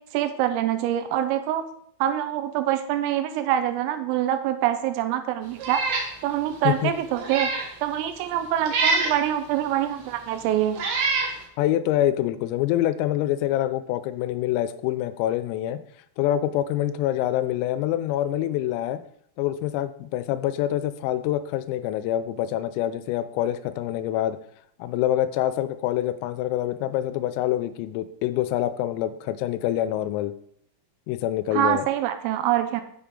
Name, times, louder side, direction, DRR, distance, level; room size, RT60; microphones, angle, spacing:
voice 1, 0.1-1.6 2.0-5.8 6.2-7.5 7.8-10.8 31.5-32.8, right 11 dB, 85° right, 9 dB, 3.2 m, -25 dB
Meow, 5.6-6.1 6.5-6.6 7.1-7.7 8.7-9.2 10.1-10.2 10.7-11.3, right 3 dB, 65° right, 2.6 m, -25 dB
voice 2, 11.6-15.8 16.2-19.0 19.4-24.4 24.8-30.3 31.1-31.9, left 12 dB, 90° left, 12 dB, 3.3 m, -26 dB
7.0 x 6.9 x 3.7 m, 0.68 s
omnidirectional pair, 5.9 m